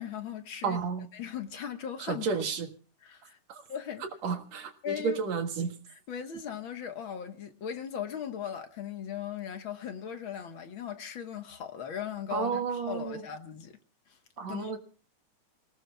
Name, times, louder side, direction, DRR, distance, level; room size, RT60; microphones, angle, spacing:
voice 1, 0.0-0.8 1.1-2.3 3.0-3.4 3.7-4.0 4.8-5.2 6.1-12.6 12.9-13.8 14.1-14.2 14.5-14.8, left 8 dB, 55° left, 1.5 m, -38 dB
voice 2, 0.6-1.1 2.0-2.7 3.5-3.7 4.2-5.7 12.3-13.2 14.4-14.8, right 5 dB, 65° right, 2.8 m, -32 dB
29.5 x 19.0 x 2.2 m
omnidirectional pair, 3.5 m